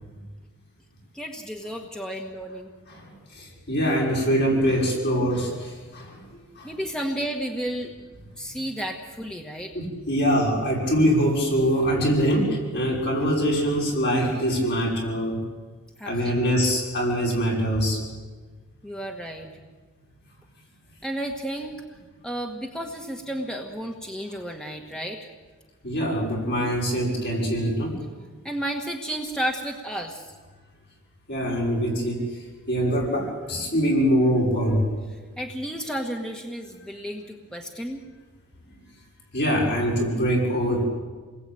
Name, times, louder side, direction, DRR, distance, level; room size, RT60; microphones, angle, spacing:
voice 1, 1.1-2.7 6.6-8.1 8.4-9.7 16.0-16.3 18.8-19.5 21.0-21.7 22.2-25.3 28.4-30.3 35.4-38.0, right 1 dB, 5° left, 1 dB, 1.7 m, -32 dB
voice 2, 2.9-6.2 6.6-6.7 9.7-15.4 16.0-18.0 25.8-28.0 31.3-34.8 39.3-40.8, equal, 50° left, -2 dB, 6.3 m, -24 dB
29.5 x 21.0 x 9.0 m, 1.4 s
head